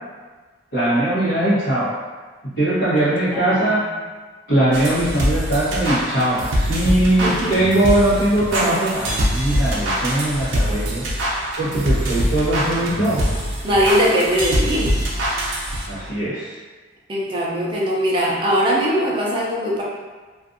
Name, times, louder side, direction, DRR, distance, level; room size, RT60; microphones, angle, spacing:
voice 1, 0.7-1.9 2.6-3.8 4.5-11.0 11.6-13.2 15.9-16.5, right 1 dB, 70° left, -15 dB, 1.1 m, -20 dB
voice 2, 3.3-3.8 7.2-7.5 13.6-14.9 17.1-19.8, equal, 25° right, -5 dB, 0.5 m, -20 dB
sound 1, 4.7-16.1, equal, 80° right, 0.5 m, -23 dB
2.5 x 2.4 x 2.5 m, 1.4 s
head